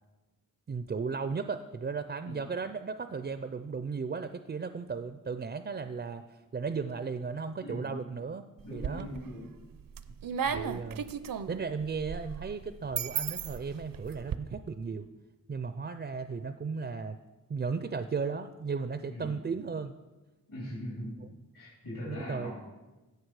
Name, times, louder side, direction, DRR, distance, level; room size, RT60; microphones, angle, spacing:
voice 1, 0.7-8.4 8.7-9.1 10.4-11.0 11.5-15.1 15.5-17.2 17.5-19.9 22.1-22.5, right 5 dB, 35° right, 10 dB, 0.4 m, -35 dB
voice 2, 7.6-8.1 8.6-9.6 19.1-19.4 20.5-22.5, left 1 dB, 70° left, -6 dB, 3.7 m, -41 dB
sound 1, 8.6-9.3 9.7-14.4, right 7 dB, 80° right, 0.6 m, -35 dB
16.5 x 6.4 x 4.8 m, 1.1 s
wide cardioid pair, 140°, 33 cm